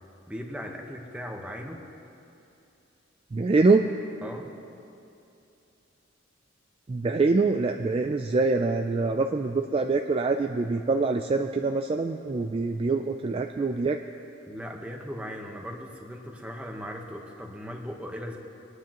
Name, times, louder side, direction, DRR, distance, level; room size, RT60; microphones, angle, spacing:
voice 1, 0.3-1.8 4.2-4.5 14.5-18.4, equal, 5° right, 1 dB, 1.1 m, -38 dB
voice 2, 3.3-3.9 6.9-14.0, right 3 dB, 30° right, 5 dB, 0.3 m, -24 dB
25.0 x 9.7 x 3.0 m, 2.7 s
head